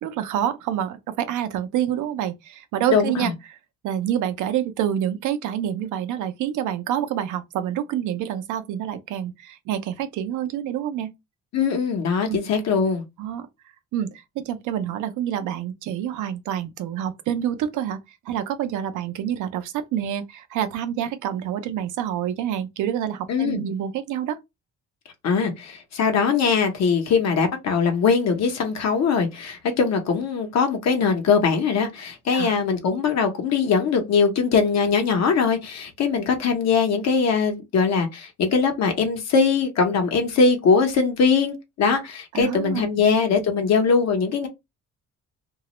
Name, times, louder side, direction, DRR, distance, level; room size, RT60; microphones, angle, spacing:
voice 1, 0.0-3.6 3.8-11.1 12.3-12.4 13.2-13.5 13.9-18.0 18.3-24.4 32.3-32.5 42.3-42.8, right 10 dB, 80° right, 0.6 m, -27 dB
voice 2, 2.9-3.3 11.5-13.0 23.3-23.6 25.2-44.5, left 5 dB, 60° left, 0.8 m, -21 dB
2.3 x 2.0 x 2.9 m
cardioid pair, 90°, 30 cm